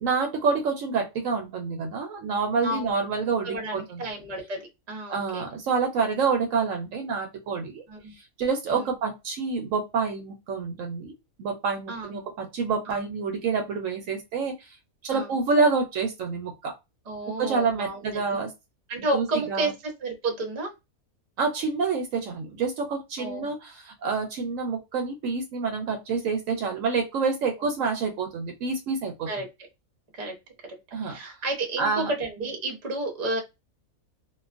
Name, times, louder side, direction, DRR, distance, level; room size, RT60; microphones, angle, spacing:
voice 1, 0.0-4.0 5.1-7.8 8.4-11.1 11.4-14.8 15.0-16.7 17.3-18.5 19.1-19.7 21.4-29.3 30.9-31.2 31.8-32.1, right 4 dB, 70° right, 3 dB, 0.9 m, -27 dB
voice 2, 3.4-4.6 4.9-5.4 7.9-8.1 8.7-8.9 11.9-12.2 12.9-13.1 15.1-15.3 17.1-18.4 18.9-19.7 20.0-20.7 23.2-23.5 29.3-29.5 30.2-30.3 31.0-33.4, right 2 dB, 35° right, 1 dB, 0.8 m, -31 dB
2.5 x 2.3 x 2.4 m, 0.23 s
omnidirectional pair, 1.5 m